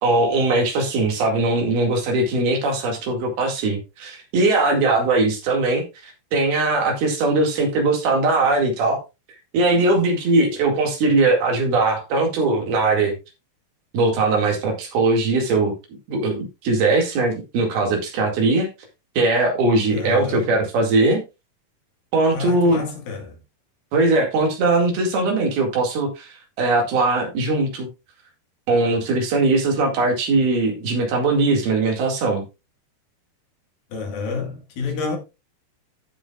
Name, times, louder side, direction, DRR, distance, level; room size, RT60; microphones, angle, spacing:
voice 1, 0.0-9.0 9.5-13.1 13.9-15.7 16.1-18.7 19.2-21.2 22.1-22.8 23.9-27.9 28.7-32.4, right 2 dB, 65° right, 4.0 m, -20 dB
voice 2, 19.9-20.5 22.3-23.4 33.9-35.2, left 4 dB, 65° left, 3.5 m, -29 dB
14.0 x 6.9 x 2.4 m
omnidirectional pair, 4.8 m